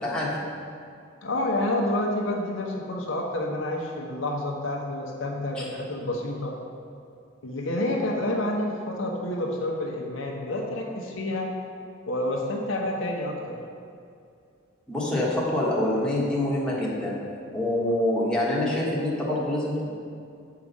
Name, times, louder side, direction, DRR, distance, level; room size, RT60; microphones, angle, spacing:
voice 1, 0.0-0.4 5.6-5.7 14.9-17.2 17.5-20.0, left 1 dB, 5° left, -7 dB, 1.5 m, -26 dB
voice 2, 1.2-6.5 7.4-11.5 12.1-13.6, left 1 dB, 75° left, -1 dB, 1.0 m, -29 dB
7.6 x 4.8 x 5.4 m, 2.4 s
head